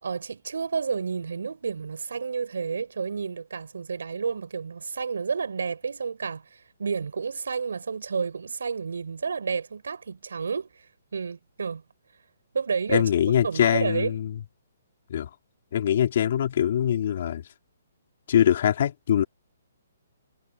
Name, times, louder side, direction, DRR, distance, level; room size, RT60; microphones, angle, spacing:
voice 1, 0.0-10.9 11.1-11.8 12.5-13.1 13.4-14.2, right 5 dB, 80° right, 4.2 m, -30 dB
voice 2, 12.9-14.3 15.1-15.3 15.7-17.4 18.3-19.2, left 10 dB, 55° left, 3.1 m, -23 dB
hypercardioid pair, 150°, 0 cm